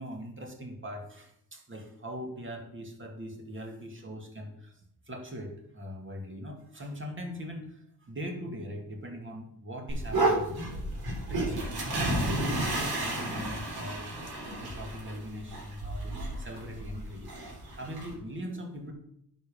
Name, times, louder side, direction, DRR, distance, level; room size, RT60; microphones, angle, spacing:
voice 1, 0.0-4.8 5.1-10.9 11.3-14.1 14.4-18.9, equal, 30° right, 2 dB, 2.3 m, -41 dB
sound 1, 9.9-18.1, right 1 dB, 65° right, 4.2 m, -32 dB
10.5 x 5.4 x 5.6 m, 0.73 s
cardioid pair, 95°, 39 cm